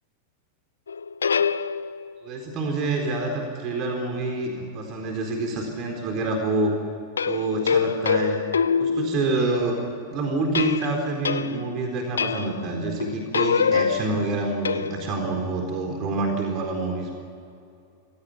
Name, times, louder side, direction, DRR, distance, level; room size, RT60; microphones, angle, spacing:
sound 1, 0.9-2.2 7.2-9.6 10.6-11.8 12.2-12.7 13.0-15.3, left 6 dB, 70° left, 0.6 m, -25 dB
voice 1, 2.2-6.7 7.2-8.4 8.8-9.7 10.1-17.1, right 2 dB, 35° right, 3 dB, 4.1 m, -27 dB
26.0 x 17.0 x 9.8 m, 2.5 s
figure-of-eight pair, 90°, 0 cm